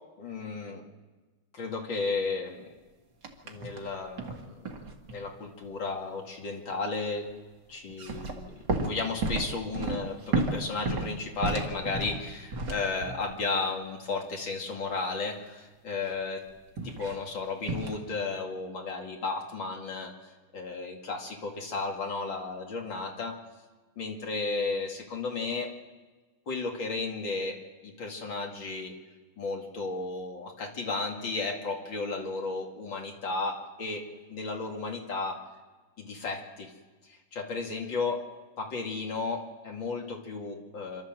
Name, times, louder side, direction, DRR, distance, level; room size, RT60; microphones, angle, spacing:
voice 1, 0.2-0.8 1.5-2.7 3.4-4.6 5.1-7.3 7.7-16.4 16.8-23.3 24.0-25.7 26.5-27.6 27.8-28.9 29.4-34.0 34.3-35.4 36.0-36.7 37.0-38.2 38.6-41.0, left 3 dB, 60° left, 2 dB, 3.1 m, -34 dB
sound 1, 3.2-3.9 4.2-5.3 7.9-13.3 16.8-17.2 17.6-18.0, right 3 dB, 50° right, 2.3 m, -32 dB
27.0 x 13.0 x 7.6 m, 1.3 s
omnidirectional pair, 2.4 m